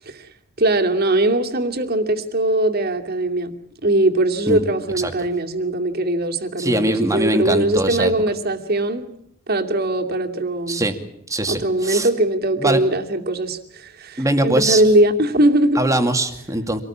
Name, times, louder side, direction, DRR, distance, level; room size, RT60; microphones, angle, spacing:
voice 1, 0.6-3.5 3.8-9.1 9.5-10.8 11.4-15.8, right 1 dB, 50° right, 3 dB, 2.6 m, -20 dB
voice 2, 6.6-8.1 10.7-11.0 11.3-12.1 12.6-12.8 14.2-14.8 15.8-16.8, right 1 dB, 15° right, 6 dB, 2.3 m, -21 dB
26.0 x 19.0 x 8.7 m, 0.75 s
head